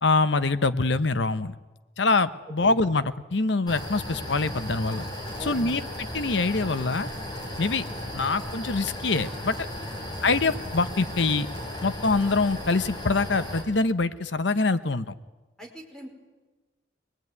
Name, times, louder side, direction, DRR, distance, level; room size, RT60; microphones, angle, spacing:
voice 1, 0.0-1.5 2.0-5.0 5.4-7.1 7.6-7.8 8.1-9.7 10.2-11.5 11.8-15.1, left 3 dB, 65° left, 13 dB, 0.9 m, -24 dB
sound 1, 3.7-13.6, left 1 dB, 20° left, 6.9 m, -35 dB
voice 2, 5.4-5.8 10.0-10.1 15.6-16.1, equal, 5° left, 0 dB, 5.1 m, -42 dB
25.0 x 21.0 x 9.6 m, 1.2 s
head